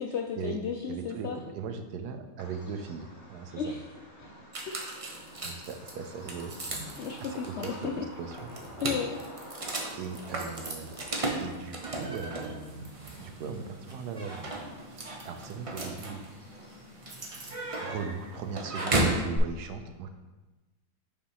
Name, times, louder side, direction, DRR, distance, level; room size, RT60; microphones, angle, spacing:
voice 1, 0.0-1.4 3.6-3.8 4.7-4.8 7.0-8.0 8.8-9.4, left 6 dB, 70° left, 2 dB, 0.6 m, -34 dB
voice 2, 0.9-3.7 5.4-8.5 10.0-11.0 11.4-14.5 14.9-16.2 17.8-20.1, right 5 dB, 85° right, 7 dB, 1.2 m, -39 dB
Bird vocalization bird call bird song, 2.4-19.4, left 1 dB, 35° left, 1.2 m, -50 dB
sound 1, 4.5-19.3, right 2 dB, 35° right, 0.5 m, -35 dB
5.6 x 4.6 x 4.8 m, 1.1 s
omnidirectional pair, 1.7 m